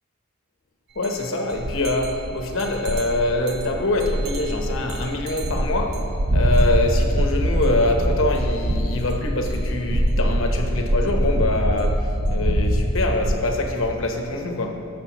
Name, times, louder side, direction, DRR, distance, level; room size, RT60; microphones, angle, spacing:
voice 1, 1.0-14.8, left 2 dB, 90° left, 3 dB, 1.1 m, -24 dB
sound 1, 1.0-1.2 1.5-13.3, equal, 55° right, 0.7 m, -23 dB
19.0 x 6.6 x 3.1 m, 2.5 s
head